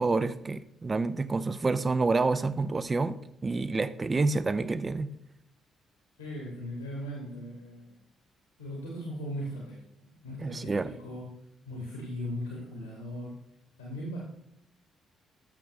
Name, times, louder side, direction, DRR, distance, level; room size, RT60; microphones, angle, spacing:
voice 1, 0.0-5.1 10.4-10.9, right 3 dB, 30° right, 14 dB, 0.5 m, -28 dB
voice 2, 6.2-8.0 8.6-11.3 11.7-13.3 13.8-14.2, equal, 80° left, -3 dB, 1.7 m, -38 dB
12.0 x 6.9 x 3.2 m, 0.76 s
figure-of-eight pair, 40°, 0 cm